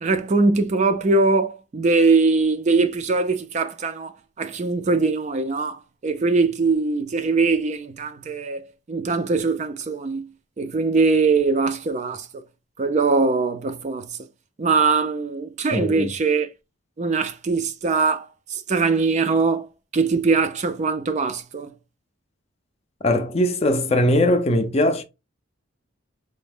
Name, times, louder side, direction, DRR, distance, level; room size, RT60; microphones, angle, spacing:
voice 1, 0.0-8.6 8.9-10.3 10.6-12.3 12.8-14.1 14.6-16.5 17.0-19.7 19.9-21.7, right 4 dB, 35° right, 0.4 m, -21 dB
voice 2, 15.7-16.1 23.0-25.0, left 1 dB, 30° left, 0.5 m, -20 dB
3.8 x 2.0 x 3.4 m
head